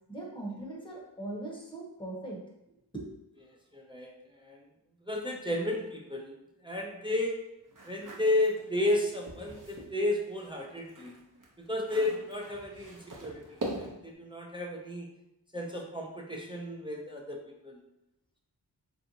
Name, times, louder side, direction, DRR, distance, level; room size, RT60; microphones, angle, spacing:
voice 1, 0.1-2.4 2.9-3.0, right 2 dB, 10° left, -2 dB, 0.9 m, -40 dB
voice 2, 3.7-4.1 4.4-4.6 5.1-6.3 6.6-7.4 7.9-11.1 11.6-15.1 15.5-17.8, left 1 dB, 10° right, -1 dB, 0.5 m, -32 dB
sound 1, 7.7-9.9 10.3-14.1, right 1 dB, 45° right, 0.8 m, -43 dB
3.3 x 2.6 x 2.8 m, 0.87 s
wide cardioid pair, 40°, 43 cm